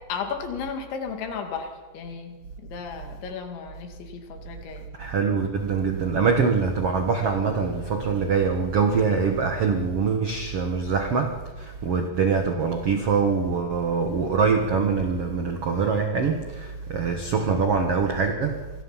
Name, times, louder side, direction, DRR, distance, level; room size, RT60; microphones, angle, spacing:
voice 1, 0.1-1.7 1.9-2.4 2.7-4.8, left 6 dB, 90° left, 5 dB, 4.6 m, -34 dB
voice 2, 5.0-18.6, right 5 dB, 80° right, 4 dB, 1.3 m, -24 dB
27.0 x 20.5 x 5.8 m, 1.3 s
omnidirectional pair, 5.1 m